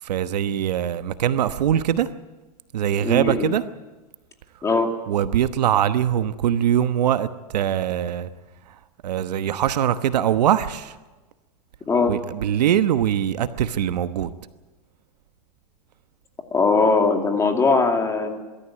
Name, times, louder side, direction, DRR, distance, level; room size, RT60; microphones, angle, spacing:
voice 1, 0.0-2.1 2.7-3.6 5.1-8.3 9.0-10.9 12.1-14.3, right 10 dB, 85° right, 1.1 m, -22 dB
voice 2, 3.0-3.5 4.6-4.9 11.9-12.1 16.5-18.4, left 4 dB, 15° left, 2.4 m, -20 dB
23.5 x 13.5 x 8.9 m
supercardioid pair, 135°, 20 cm